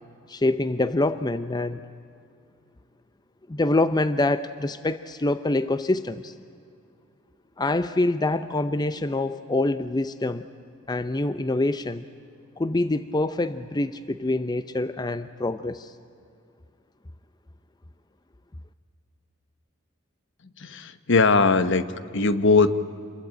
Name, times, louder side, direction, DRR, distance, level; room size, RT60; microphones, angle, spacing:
voice 1, 0.3-1.8 3.5-6.3 7.6-10.5 10.9-12.0 12.6-15.9, left 2 dB, 20° left, 12 dB, 0.6 m, -25 dB
voice 2, 20.6-21.8 22.1-22.7, left 4 dB, 60° left, 13 dB, 1.1 m, -20 dB
27.5 x 22.0 x 8.9 m, 2.4 s
head